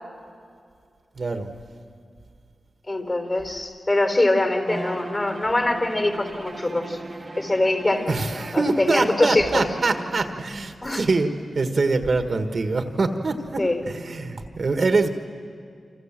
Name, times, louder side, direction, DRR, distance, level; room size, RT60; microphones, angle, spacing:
voice 1, 1.2-1.5 8.1-15.1, right 3 dB, 50° right, 7 dB, 1.7 m, -24 dB
voice 2, 2.9-7.0 7.4-8.1 8.5-9.7 10.8-11.1 13.6-13.8, left 2 dB, 30° left, 6 dB, 4.0 m, -23 dB
Bowed string instrument, 4.6-10.4, right 2 dB, 30° right, 1.4 m, -38 dB
29.0 x 26.0 x 7.6 m, 2.2 s
wide cardioid pair, 85°, 0 cm